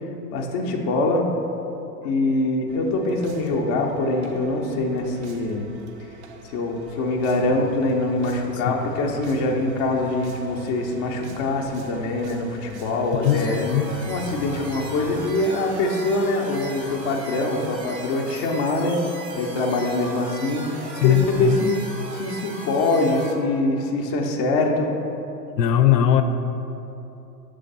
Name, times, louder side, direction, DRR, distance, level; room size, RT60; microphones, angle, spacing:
voice 1, 0.0-1.3 2.0-5.7 6.0-6.2 6.4-13.7 14.1-21.8 22.1-24.9, left 2 dB, 25° left, 0 dB, 0.4 m, -24 dB
sound 1, 2.7-17.4, right 1 dB, 45° right, 0.5 m, -43 dB
voice 2, 13.2-13.9 21.0-21.6 25.6-26.2, left 11 dB, 80° left, 9 dB, 0.6 m, -19 dB
sound 2, 13.2-23.3, right 2 dB, 85° right, 1.1 m, -37 dB
5.7 x 3.4 x 5.3 m, 2.9 s
hypercardioid pair, 115°, 48 cm